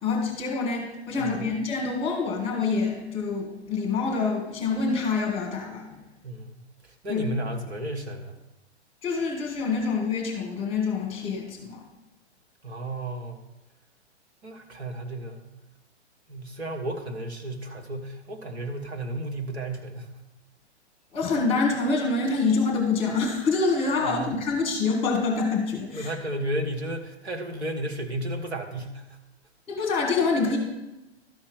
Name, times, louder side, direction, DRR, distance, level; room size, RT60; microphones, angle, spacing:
voice 1, 0.0-6.0 7.1-7.2 9.0-11.8 21.1-26.1 29.7-30.6, left 4 dB, 15° left, 1 dB, 2.5 m, -26 dB
voice 2, 1.2-1.6 6.2-8.4 12.6-13.4 14.4-15.5 16.3-20.2 24.0-24.3 25.9-29.2, right 1 dB, 65° right, 3 dB, 1.6 m, -33 dB
12.5 x 4.3 x 6.4 m, 0.98 s
figure-of-eight pair, 115°, 34 cm